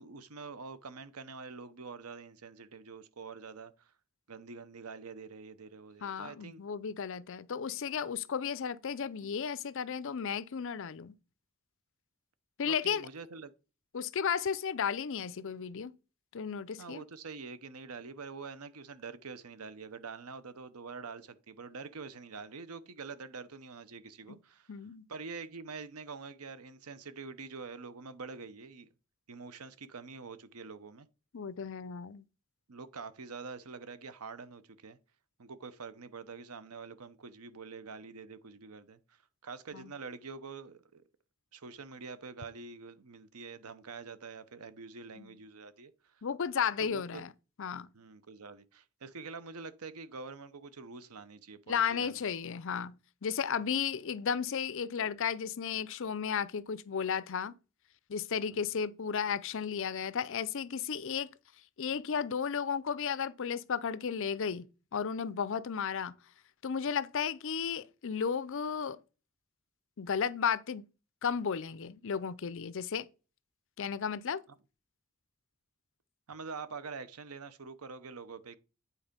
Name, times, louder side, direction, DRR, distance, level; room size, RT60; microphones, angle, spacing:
voice 1, 0.0-3.9 4.3-6.6 12.6-13.5 16.8-24.7 25.1-28.9 29.3-31.1 32.7-35.0 35.4-41.0 41.5-46.2 46.8-47.2 47.9-52.2 58.5-58.7 76.3-78.6, right 4 dB, 90° right, 0.9 m, -46 dB
voice 2, 6.0-11.2 12.6-13.1 13.9-15.9 16.3-17.0 24.3-24.4 24.7-25.0 31.3-32.2 39.7-39.9 45.2-45.3 46.2-47.3 47.6-47.9 51.7-57.5 58.1-61.3 61.8-66.2 66.6-69.0 70.0-70.8 71.2-73.1 73.8-74.4, left 7 dB, 60° left, 0.5 m, -34 dB
9.1 x 4.2 x 5.2 m
head